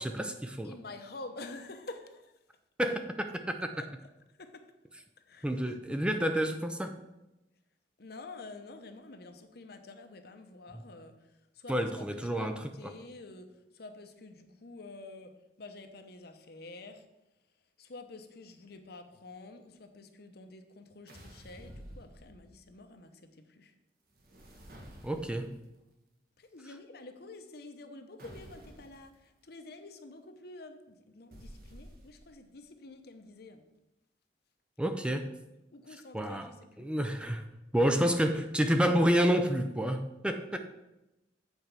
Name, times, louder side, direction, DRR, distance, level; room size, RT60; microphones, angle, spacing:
voice 1, 0.0-0.7 2.8-3.7 5.4-7.0 11.7-12.6 25.0-25.6 34.8-35.3 36.1-36.5 36.8-37.5 37.7-40.6, equal, 5° right, 6 dB, 0.5 m, -29 dB
voice 2, 0.6-2.3 4.4-4.7 5.3-5.5 8.0-17.0 17.8-23.7 26.4-33.7 35.7-36.9 40.5-40.6, left 2 dB, 60° left, 7 dB, 0.9 m, -48 dB
sound 1, 21.1-22.7 24.1-25.6 28.2-29.0 31.3-32.4, equal, 55° right, 1.7 m, -51 dB
8.1 x 4.5 x 6.8 m, 0.94 s
head